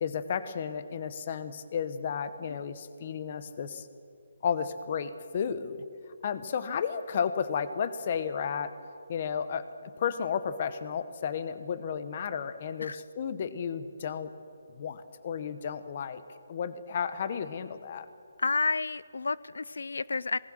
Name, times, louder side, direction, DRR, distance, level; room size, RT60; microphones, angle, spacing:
voice 1, 0.0-3.9 4.4-5.8 6.2-8.7 9.1-9.6 10.0-14.3 14.8-18.1, left 7 dB, 25° left, 13 dB, 0.9 m, -33 dB
voice 2, 18.4-20.4, left 3 dB, 85° left, 20 dB, 0.5 m, -30 dB
26.5 x 19.5 x 6.3 m, 2.5 s
hypercardioid pair, 180°, 0 cm